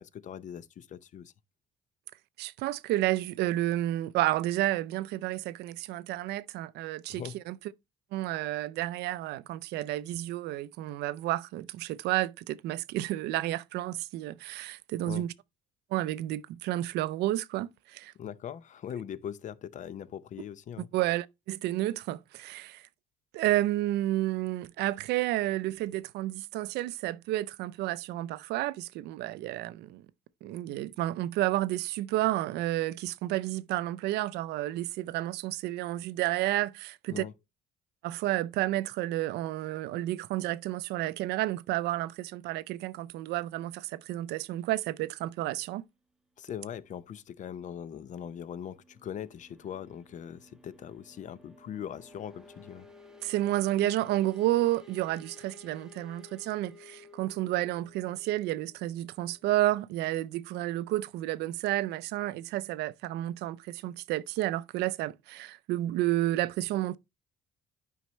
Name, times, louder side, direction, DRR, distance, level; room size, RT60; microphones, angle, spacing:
voice 1, 0.0-1.3 7.1-7.4 15.0-15.3 18.2-20.9 37.1-37.3 46.4-52.9, left 9 dB, 45° left, 0.6 m, -41 dB
voice 2, 2.4-7.6 8.1-15.3 15.9-18.1 20.8-22.9 23.3-30.0 30.4-37.2 38.0-45.8 53.2-67.0, right 15 dB, 85° right, 0.5 m, -31 dB
sound 1, 47.8-60.3, left 3 dB, 5° right, 0.8 m, -55 dB
9.2 x 5.5 x 3.1 m
cardioid pair, 110°, 17 cm